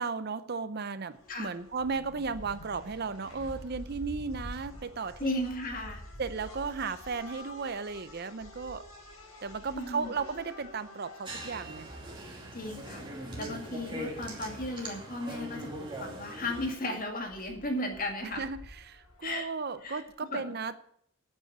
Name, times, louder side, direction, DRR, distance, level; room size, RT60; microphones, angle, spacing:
voice 1, 0.0-5.4 6.2-8.9 9.4-11.9 18.2-20.8, right 4 dB, 50° right, 13 dB, 0.6 m, -35 dB
sound 1, 1.1-20.1, left 1 dB, 80° left, 4.0 m, -49 dB
voice 2, 5.2-6.0 9.7-10.1 12.5-18.4 19.2-19.5 19.8-20.0 20.3-20.4, left 1 dB, 40° left, 3 dB, 2.3 m, -35 dB
sound 2, 11.3-16.7, right 1 dB, 25° right, 2.6 m, -41 dB
9.0 x 8.2 x 8.6 m, 0.68 s
head